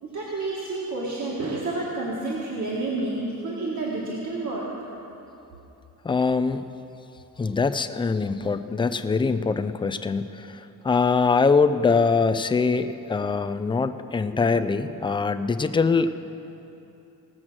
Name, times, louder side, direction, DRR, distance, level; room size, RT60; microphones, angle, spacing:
voice 1, 0.0-4.7, right 2 dB, 50° right, -6 dB, 1.8 m, -29 dB
voice 2, 6.0-6.6 7.4-16.1, left 4 dB, 15° left, 9 dB, 0.3 m, -23 dB
18.0 x 7.5 x 6.2 m, 3.0 s
wide cardioid pair, 150°, 36 cm